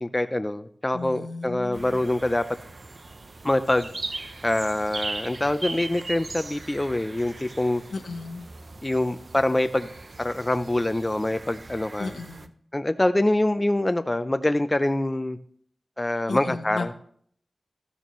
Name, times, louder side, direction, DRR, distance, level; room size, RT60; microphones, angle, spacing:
voice 1, 0.0-2.4 3.4-3.9 4.4-7.8 8.8-9.9 10.2-12.1 12.7-15.4 16.0-16.9, left 1 dB, 20° left, 10 dB, 0.4 m, -25 dB
voice 2, 0.9-2.0 7.9-8.4 12.0-12.5 16.3-16.9, left 3 dB, 80° left, 7 dB, 0.9 m, -34 dB
sound 1, 1.7-12.5, right 3 dB, 50° right, 0.6 m, -39 dB
13.5 x 6.9 x 3.0 m, 0.62 s
wide cardioid pair, 85°, 0 cm